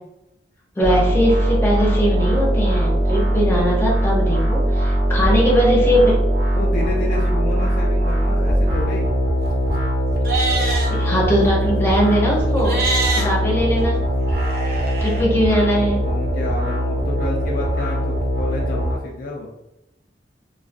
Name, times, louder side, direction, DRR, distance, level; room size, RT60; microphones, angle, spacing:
voice 1, 0.8-6.2 10.9-12.8 13.1-14.0 15.0-16.0, equal, 15° left, -3 dB, 0.6 m, -20 dB
sound 1, 0.8-18.9, equal, 80° right, 0.9 m, -20 dB
voice 2, 6.5-9.2 15.1-19.5, left 2 dB, 55° left, -2 dB, 0.3 m, -30 dB
Livestock farm animals working animals, 10.2-10.9 12.6-13.2 14.3-15.2, right 3 dB, 55° right, 0.5 m, -24 dB
2.3 x 2.2 x 2.5 m, 0.89 s
head